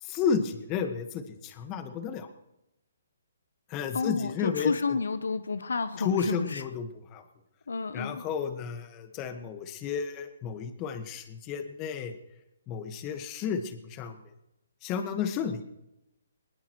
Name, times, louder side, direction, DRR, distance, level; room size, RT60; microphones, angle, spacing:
voice 1, 0.0-2.3 3.7-4.7 6.0-7.2 7.9-12.1 12.7-14.2 14.8-15.6, left 6 dB, 25° left, 8 dB, 1.5 m, -32 dB
voice 2, 3.9-6.6 7.7-8.2, left 4 dB, 80° left, 13 dB, 0.9 m, -30 dB
20.5 x 19.5 x 3.2 m, 0.91 s
hypercardioid pair, 150°, 0 cm